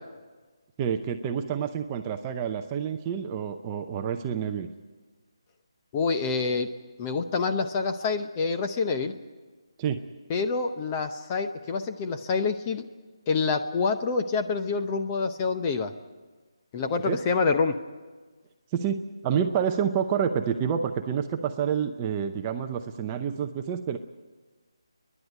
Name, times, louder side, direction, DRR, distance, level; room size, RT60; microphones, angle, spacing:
voice 1, 0.8-4.7 9.8-10.0 17.0-17.2 18.7-24.0, right 8 dB, 15° right, 6 dB, 0.7 m, -28 dB
voice 2, 5.9-6.7 7.0-9.1 10.3-12.8 13.3-15.9 16.7-17.7, left 4 dB, 20° left, 6 dB, 0.7 m, -27 dB
29.5 x 11.0 x 9.9 m, 1.4 s
figure-of-eight pair, 170°, 3 cm